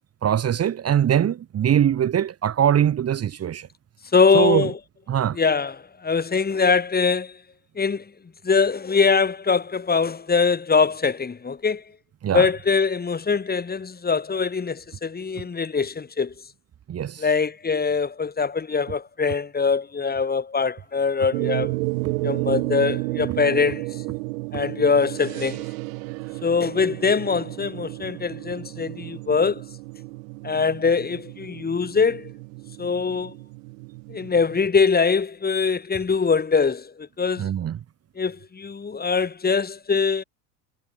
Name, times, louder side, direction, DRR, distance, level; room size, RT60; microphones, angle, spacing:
voice 1, 0.2-3.7 4.3-4.7 5.1-5.4 12.2-12.5 16.9-17.3 37.4-37.8, right 9 dB, 35° right, 1.9 m, -22 dB
voice 2, 4.1-4.7 5.3-7.4 7.7-8.0 8.4-11.8 12.3-16.3 17.2-21.7 22.2-24.0 24.5-25.6 26.4-29.6 30.4-32.3 32.8-33.3 34.1-37.5 38.2-40.2, left 5 dB, 20° left, 3.2 m, -22 dB
sound 1, 21.3-34.7, right 26 dB, 65° right, 2.4 m, -32 dB
hypercardioid pair, 75°, 43 cm